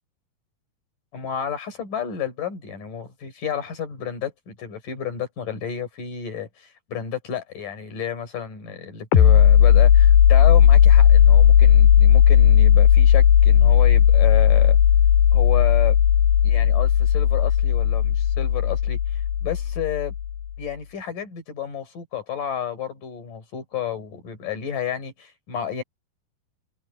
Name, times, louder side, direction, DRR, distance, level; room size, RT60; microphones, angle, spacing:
voice 1, 1.1-14.8 15.3-16.0 16.4-20.1 20.6-25.8, left 9 dB, 55° left, 5.9 m, -31 dB
sound 1, 9.1-20.5, left 9 dB, 85° left, 4.0 m, -15 dB
omnidirectional pair, 4.4 m